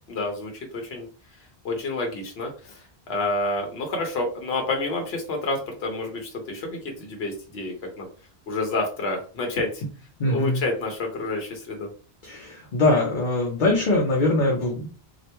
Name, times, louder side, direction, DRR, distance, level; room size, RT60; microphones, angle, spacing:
voice 1, 0.1-1.1 1.6-8.1 8.5-9.8 10.2-11.9, left 2 dB, 80° left, 2 dB, 1.0 m, -29 dB
voice 2, 10.2-10.6 12.2-14.9, left 2 dB, 55° left, -1 dB, 0.8 m, -22 dB
3.2 x 2.4 x 2.9 m, 0.37 s
omnidirectional pair, 1.0 m